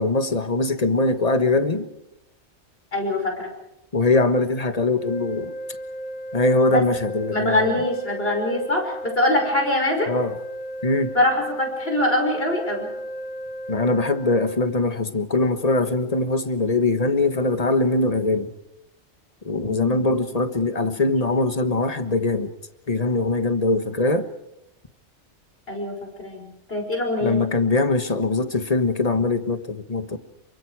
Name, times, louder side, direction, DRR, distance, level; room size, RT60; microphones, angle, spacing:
voice 1, 0.0-1.9 3.9-5.5 6.3-7.8 10.1-10.4 10.8-11.1 13.7-18.5 19.4-22.5 22.9-24.3 27.2-30.2, left 2 dB, 35° left, 1.5 m, -22 dB
voice 2, 2.9-3.5 6.7-6.8 7.3-10.1 11.1-12.9 19.5-20.1 25.7-27.4, left 1 dB, 60° left, 6.0 m, -24 dB
sound 1, 4.9-14.6, equal, 5° left, 3.2 m, -34 dB
28.5 x 24.5 x 4.8 m
omnidirectional pair, 1.2 m